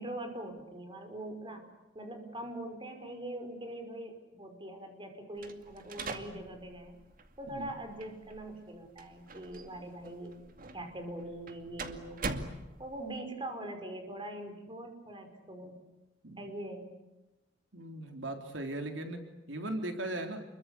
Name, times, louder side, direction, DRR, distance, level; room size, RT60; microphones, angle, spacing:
voice 1, 0.0-1.6 1.9-7.0 7.4-10.3 10.7-12.2 12.8-15.7 16.4-16.9, right 1 dB, 25° right, 6 dB, 5.2 m, -42 dB
sound 1, 5.4-13.2, right 3 dB, 50° right, 2.4 m, -44 dB
voice 2, 17.7-20.4, right 1 dB, 75° right, 5 dB, 3.8 m, -38 dB
30.0 x 23.0 x 8.4 m, 1.0 s
head